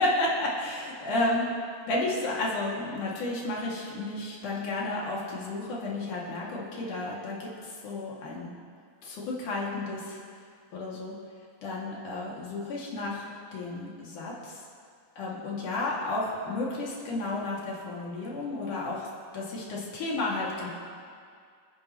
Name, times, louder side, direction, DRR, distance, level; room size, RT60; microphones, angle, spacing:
voice 1, 0.0-1.5 1.9-8.5 9.0-10.2 10.7-11.1 11.6-14.6 15.2-19.1 19.3-20.7, left 2 dB, 60° left, -4 dB, 3.7 m, -32 dB
28.0 x 9.6 x 3.1 m, 2.2 s
omnidirectional pair, 4.4 m